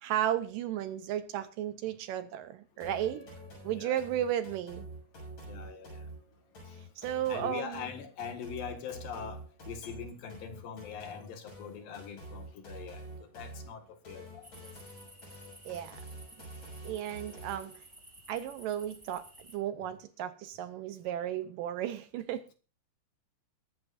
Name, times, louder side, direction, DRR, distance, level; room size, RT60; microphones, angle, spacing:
voice 1, 0.0-3.3 3.6-4.9 7.0-7.8 15.7-16.0 16.8-17.7 18.3-22.5, right 11 dB, 75° right, 11 dB, 2.2 m, -34 dB
sound 1, 2.8-17.8, right 1 dB, 50° left, 8.2 m, -47 dB
sound 2, 2.8-7.8, right 4 dB, 15° left, 2.0 m, -58 dB
voice 2, 3.7-4.0 5.4-6.0 6.6-9.4 9.7-14.7, left 7 dB, 70° left, 6 dB, 3.4 m, -43 dB
sound 3, 14.4-19.6, right 1 dB, 10° right, 1.8 m, -54 dB
22.0 x 11.0 x 2.5 m, 0.35 s
omnidirectional pair, 4.3 m